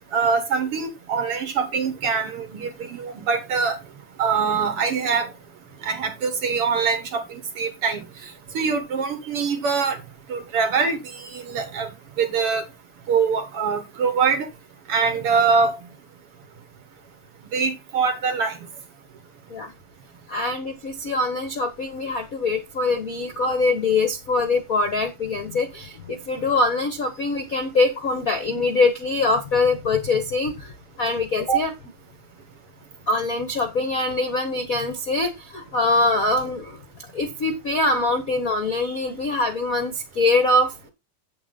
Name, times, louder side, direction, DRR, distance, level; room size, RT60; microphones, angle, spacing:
voice 1, 0.1-3.8 4.2-5.3 5.8-10.0 10.3-11.9 12.2-12.6 13.1-14.5 14.9-15.8 17.5-18.6, right 5 dB, 50° right, 2.0 m, -23 dB
voice 2, 20.3-31.7 33.1-40.9, left 2 dB, 85° left, 0.7 m, -23 dB
8.5 x 8.2 x 3.9 m
omnidirectional pair, 3.8 m